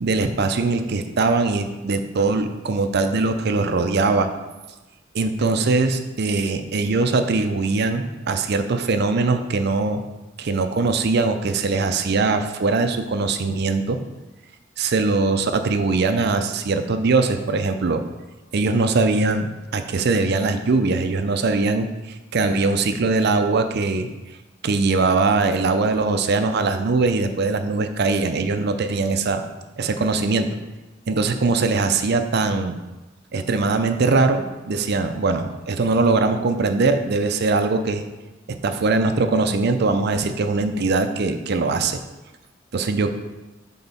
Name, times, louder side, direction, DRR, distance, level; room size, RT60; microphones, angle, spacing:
voice 1, 0.0-4.3 5.1-10.0 10.4-14.0 14.8-18.0 18.5-24.1 24.6-29.4 29.8-30.5 31.1-32.8 33.3-38.0 38.5-42.0 42.7-43.1, right 3 dB, 55° right, 8 dB, 0.5 m, -21 dB
6.1 x 3.8 x 5.4 m, 1.1 s
head